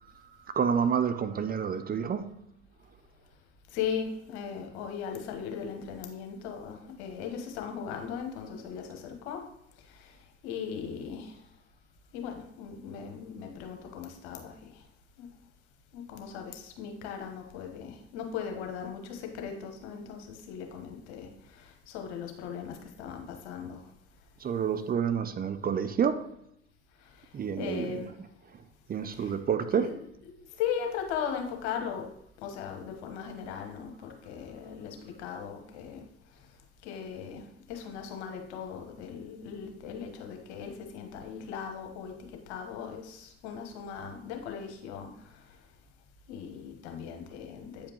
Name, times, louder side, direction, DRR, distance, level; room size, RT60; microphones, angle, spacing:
voice 1, 0.2-2.4 24.4-26.3 27.3-28.0 28.5-28.6 28.9-30.0, right 7 dB, 25° right, 0.5 m, -29 dB
voice 2, 3.7-9.4 9.9-10.2 10.4-11.4 12.1-14.8 15.2-15.3 15.9-23.9 27.0-27.3 27.6-28.1 29.1-29.4 29.7-29.9 30.6-32.0 32.4-36.0 36.8-37.4 37.7-42.1 42.5-45.3 46.3-47.9, left 7 dB, 75° left, 1.3 m, -38 dB
8.4 x 5.0 x 3.0 m
hypercardioid pair, 65°, 33 cm